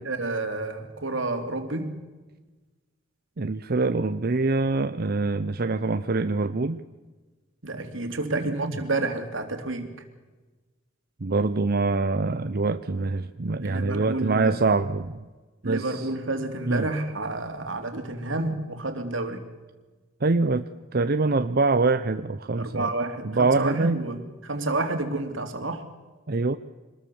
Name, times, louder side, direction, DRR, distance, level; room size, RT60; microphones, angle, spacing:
voice 1, 0.0-1.9 7.6-9.9 13.6-14.6 15.6-19.4 22.5-25.9, right 2 dB, 80° right, 6 dB, 3.1 m, -30 dB
voice 2, 3.4-6.8 8.6-8.7 11.2-15.2 15.6-16.1 16.7-16.9 17.9-18.0 20.2-22.9 23.2-24.0 26.3-26.6, right 3 dB, 50° right, 9 dB, 0.8 m, -24 dB
26.0 x 20.5 x 7.1 m, 1.3 s
head